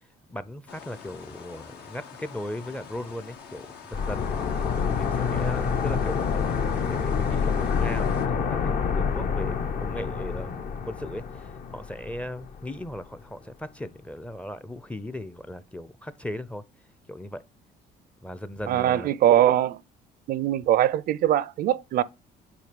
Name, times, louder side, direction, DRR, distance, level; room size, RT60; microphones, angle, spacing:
voice 1, 0.3-6.4 6.8-8.2 8.5-16.6 17.1-17.4 18.2-19.1, left 1 dB, 5° left, 0.5 m, -38 dB
sound 1, 0.7-8.3, left 6 dB, 75° left, 1.4 m, -44 dB
sound 2, 3.9-12.7 12.9-13.0, left 6 dB, 55° left, 0.9 m, -27 dB
voice 2, 18.7-19.8 20.3-22.0, right 12 dB, 60° right, 0.4 m, -22 dB
8.5 x 3.5 x 5.0 m
cardioid pair, 110°, 17 cm